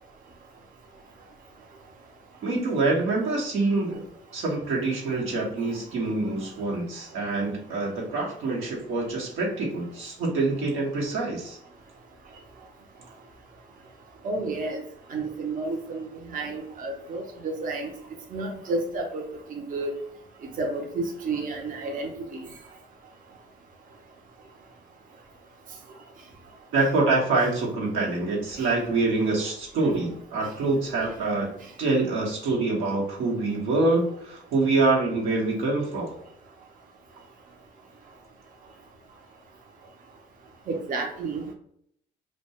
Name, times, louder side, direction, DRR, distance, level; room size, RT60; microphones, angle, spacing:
voice 1, 2.4-4.0 4.3-11.6 26.7-31.5 31.8-36.1, right 3 dB, 90° right, -2 dB, 0.9 m, -25 dB
voice 2, 14.2-14.8 15.1-17.9 18.3-19.2 19.5-19.9 20.6-22.4 28.6-28.7 40.7-41.5, right 3 dB, 45° right, 1 dB, 0.5 m, -31 dB
2.2 x 2.2 x 2.7 m, 0.69 s
cardioid pair, 90°, 20 cm